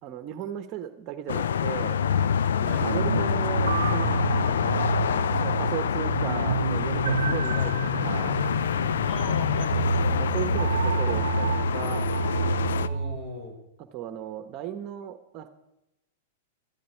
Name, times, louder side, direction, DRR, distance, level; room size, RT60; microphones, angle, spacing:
voice 1, 0.0-2.0 2.5-4.2 4.8-4.9 5.3-8.4 10.0-12.0 13.8-15.5, right 11 dB, 40° right, 9 dB, 1.1 m, -36 dB
sound 1, 1.3-12.9, left 8 dB, 80° left, 0.5 m, -26 dB
voice 2, 2.6-2.9 9.0-9.9 12.7-13.6, left 1 dB, 35° left, 3 dB, 5.1 m, -38 dB
sound 2, 2.8-13.2, right 7 dB, 80° right, 0.6 m, -29 dB
17.0 x 13.0 x 4.6 m, 0.90 s
hypercardioid pair, 120°, 0 cm